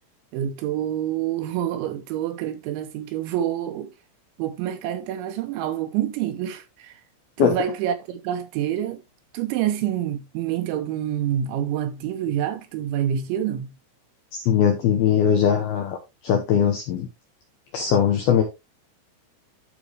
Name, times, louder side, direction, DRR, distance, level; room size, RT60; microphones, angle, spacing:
voice 1, 0.3-4.0 4.4-7.0 7.4-9.0 9.3-13.7, right 10 dB, 80° right, 2.9 m, -27 dB
voice 2, 14.3-16.0 16.2-17.1 17.7-18.4, left 8 dB, 80° left, 2.2 m, -20 dB
12.0 x 4.8 x 3.2 m
omnidirectional pair, 5.8 m